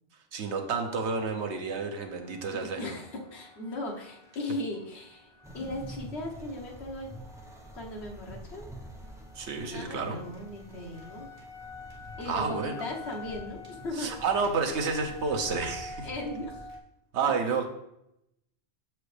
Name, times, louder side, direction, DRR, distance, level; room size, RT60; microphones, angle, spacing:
voice 1, 0.3-2.9 9.3-10.2 12.3-12.7 14.0-16.1 17.1-17.7, right 4 dB, 90° right, 5 dB, 1.1 m, -30 dB
sound 1, 0.9-16.8, left 4 dB, 35° right, 1.0 m, -49 dB
voice 2, 2.5-5.3 5.5-7.1 7.7-8.7 9.7-11.3 12.2-14.1 16.0-16.7 17.2-17.3, left 1 dB, 75° left, 0 dB, 1.3 m, -37 dB
sound 2, 5.4-16.7, equal, 5° right, 0.6 m, -48 dB
6.8 x 4.7 x 3.2 m, 0.83 s
omnidirectional pair, 1.1 m